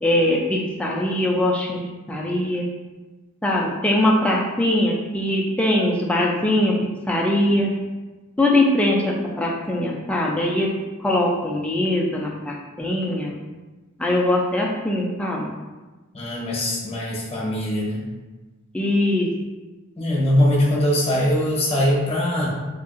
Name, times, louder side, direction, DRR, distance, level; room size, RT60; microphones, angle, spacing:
voice 1, 0.0-1.8 2.1-2.7 3.4-6.7 7.1-7.7 8.4-10.7 11.0-13.3 14.0-15.5 18.7-19.3, left 1 dB, 5° left, -2 dB, 0.3 m, -21 dB
voice 2, 16.1-18.0 20.0-22.5, left 1 dB, 30° left, -5 dB, 0.8 m, -21 dB
3.6 x 2.3 x 2.4 m, 1.2 s
head